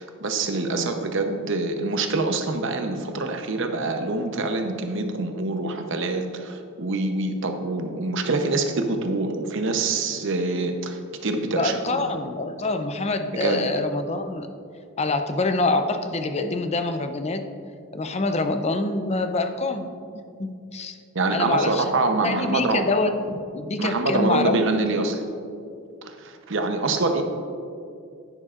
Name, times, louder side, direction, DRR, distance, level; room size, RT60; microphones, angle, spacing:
voice 1, 0.0-12.0 13.3-13.6 21.1-22.8 23.8-25.2 26.0-27.2, right 3 dB, 60° right, 5 dB, 0.8 m, -25 dB
voice 2, 11.5-14.5 15.0-17.4 17.9-21.0 21.3-24.6, left 2 dB, 30° left, 7 dB, 0.5 m, -26 dB
11.0 x 9.9 x 2.5 m, 2.4 s
head